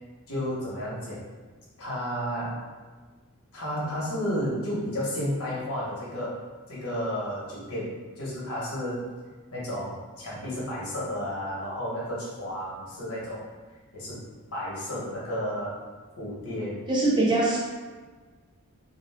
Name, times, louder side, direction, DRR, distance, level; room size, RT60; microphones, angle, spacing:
voice 1, 0.3-1.3 1.8-2.7 3.5-6.4 6.7-9.1 9.5-13.5 13.9-15.8 16.2-16.9, equal, 75° left, -6 dB, 0.9 m, -32 dB
voice 2, 16.9-17.6, right 2 dB, 20° right, -5 dB, 0.4 m, -22 dB
2.4 x 2.3 x 3.3 m, 1.4 s
head